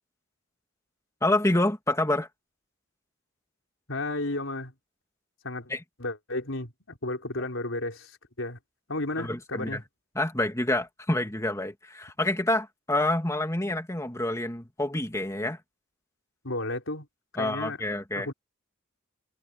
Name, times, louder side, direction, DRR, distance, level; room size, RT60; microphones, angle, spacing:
voice 1, 1.2-2.3 5.7-5.8 9.2-9.8 10.1-15.6 17.4-18.3, left 1 dB, 15° left, 2.4 m, -27 dB
voice 2, 3.9-4.7 5.4-5.7 6.0-8.6 8.9-9.8 16.4-17.1 17.3-17.8 18.1-18.3, left 2 dB, 75° left, 4.3 m, -33 dB
head